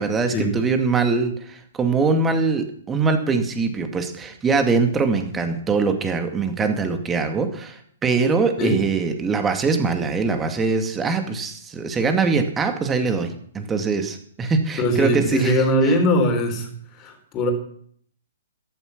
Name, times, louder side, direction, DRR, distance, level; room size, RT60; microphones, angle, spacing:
voice 1, 0.0-15.5, right 4 dB, 15° right, 6 dB, 2.2 m, -22 dB
voice 2, 14.8-17.5, equal, 25° left, 4 dB, 4.0 m, -21 dB
14.0 x 11.5 x 6.1 m, 0.62 s
figure-of-eight pair, 120°, 0 cm